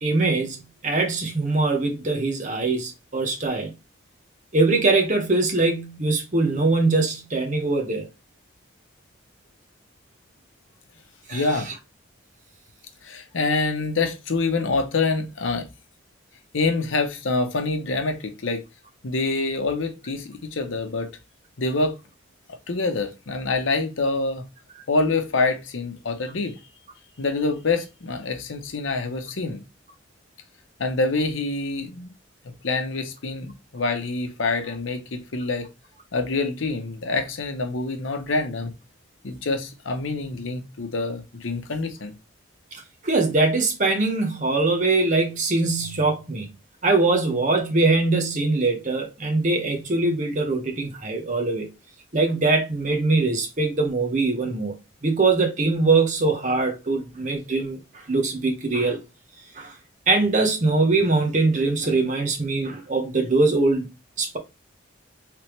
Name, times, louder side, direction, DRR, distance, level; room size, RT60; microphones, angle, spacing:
voice 1, 0.0-3.7 4.5-8.1 11.3-11.5 42.7-46.5 46.8-51.7 52.1-54.7 55.0-57.8 58.1-59.0 59.5-59.7 60.1-63.9 64.2-64.4, right 3 dB, 40° right, 0.8 m, -22 dB
voice 2, 11.3-11.7 13.0-15.7 16.5-18.6 19.0-21.1 21.6-22.0 22.7-24.4 24.9-26.5 27.2-29.6 30.8-32.1 32.6-35.7 36.1-38.7 39.2-42.2, left 3 dB, 80° left, 0.7 m, -26 dB
3.3 x 3.3 x 3.0 m
head